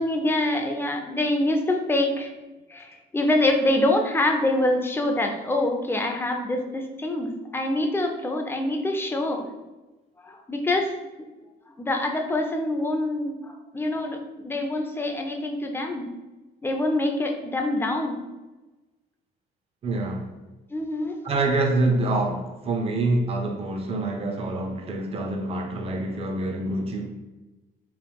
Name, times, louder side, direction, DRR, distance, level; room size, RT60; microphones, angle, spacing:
voice 1, 0.0-2.3 2.7-9.5 10.2-10.9 11.8-16.1 16.6-18.2 20.7-21.2, left 1 dB, 15° left, 3 dB, 0.5 m, -25 dB
voice 2, 19.8-20.3 21.2-27.1, right 2 dB, 35° right, 3 dB, 0.6 m, -26 dB
3.1 x 2.9 x 3.4 m, 1.1 s
cardioid pair, 110°, 17 cm